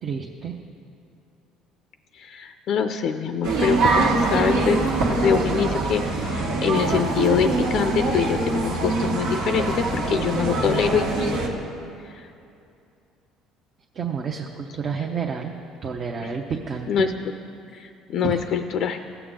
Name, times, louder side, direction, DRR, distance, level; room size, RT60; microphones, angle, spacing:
voice 1, 0.0-0.5 13.9-15.5 15.8-17.1 18.2-18.4, right 6 dB, 45° right, 1 dB, 0.7 m, -29 dB
voice 2, 2.1-4.8 5.1-11.4 12.0-12.3 16.2-16.3 16.9-17.1 17.7-19.0, left 7 dB, 60° left, 8 dB, 0.4 m, -24 dB
sound 1, 3.4-11.5, right 3 dB, 85° right, 1.6 m, -23 dB
17.0 x 6.9 x 3.8 m, 2.6 s
supercardioid pair, 100°, 0 cm